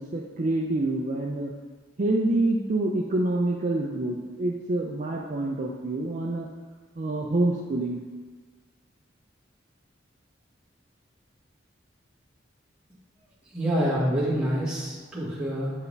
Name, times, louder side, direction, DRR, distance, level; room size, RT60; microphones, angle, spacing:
voice 1, 0.0-1.5 2.0-6.5 7.0-8.0, right 2 dB, 40° right, 0 dB, 0.4 m, -27 dB
voice 2, 13.5-15.7, equal, 5° right, -9 dB, 1.8 m, -27 dB
7.9 x 4.7 x 3.3 m, 1.4 s
head